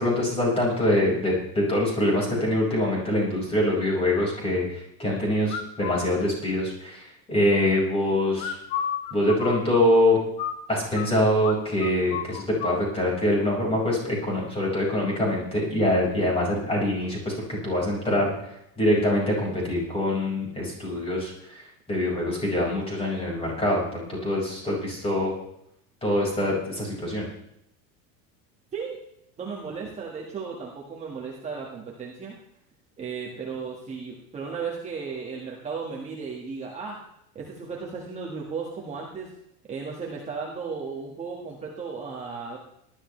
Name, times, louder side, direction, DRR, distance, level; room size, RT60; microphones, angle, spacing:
voice 1, 0.0-8.6 9.1-10.2 10.7-17.3 17.6-18.3 18.8-21.6 21.9-25.3 26.0-27.2, left 1 dB, 15° left, -3 dB, 5.2 m, -24 dB
sound 1, 5.5-6.1 8.4-11.1 11.4-11.6 11.8-12.8, left 8 dB, 60° left, 1.5 m, -32 dB
voice 2, 29.4-32.4 33.0-37.0 37.3-39.3 39.6-42.6, right 5 dB, 15° right, -3 dB, 1.6 m, -35 dB
18.5 x 12.0 x 3.3 m, 0.79 s
cardioid pair, 165°, 39 cm